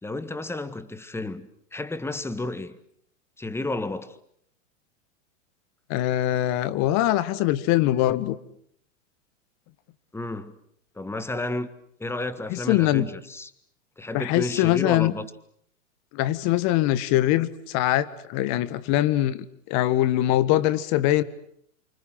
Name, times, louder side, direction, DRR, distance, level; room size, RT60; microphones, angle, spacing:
voice 1, 0.0-2.8 3.4-4.2 10.1-10.5 10.9-11.7 12.0-13.5 14.0-15.3, left 2 dB, 5° left, 1.7 m, -32 dB
voice 2, 5.9-8.4 12.5-13.1 14.1-15.1 16.1-21.2, left 14 dB, 45° left, 1.8 m, -22 dB
28.5 x 26.0 x 7.8 m
hypercardioid pair, 110°, 38 cm